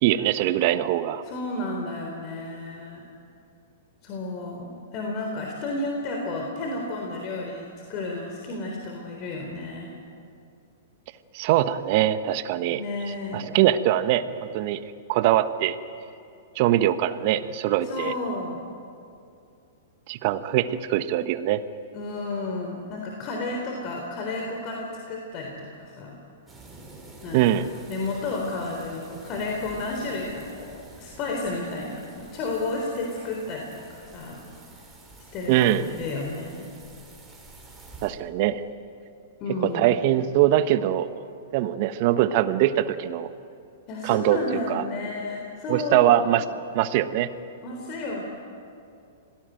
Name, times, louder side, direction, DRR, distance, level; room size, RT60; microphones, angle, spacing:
voice 1, 0.0-1.2 11.3-12.8 13.3-14.8 15.1-15.8 16.5-18.1 20.1-21.6 27.3-27.7 35.5-35.8 38.0-38.6 39.6-41.1 41.5-43.3 44.0-44.8 45.7-46.4 46.7-47.3, right 12 dB, 50° right, 12 dB, 1.1 m, -22 dB
voice 2, 1.2-3.1 4.0-9.9 12.7-13.5 17.8-18.6 21.9-26.2 27.2-27.6 27.9-34.5 35.3-36.7 39.4-39.9 43.9-46.3 47.6-48.2, left 2 dB, 40° left, 1 dB, 3.8 m, -32 dB
sound 1, 26.5-38.1, right 2 dB, 10° right, 6.1 m, -48 dB
26.0 x 18.0 x 9.2 m, 2.5 s
hypercardioid pair, 115°, 0 cm